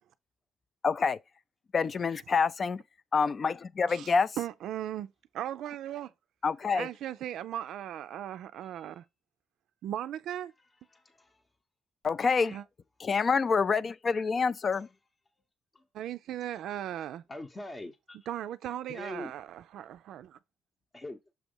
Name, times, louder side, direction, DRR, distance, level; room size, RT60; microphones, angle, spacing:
voice 1, 0.8-1.2 1.7-2.8 3.1-4.4 6.4-6.9 12.0-12.6 13.0-14.9, left 5 dB, 40° left, 0.4 m, -27 dB
voice 2, 4.4-6.1 6.7-9.0 9.8-10.5 12.5-12.6 15.9-17.2 18.3-20.4, right 11 dB, 80° right, 0.4 m, -37 dB
voice 3, 10.9-11.4 15.7-15.8 17.3-18.2 18.9-19.3 20.9-21.2, left 1 dB, 25° left, 0.8 m, -42 dB
6.9 x 3.0 x 5.2 m
cardioid pair, 90°, 0 cm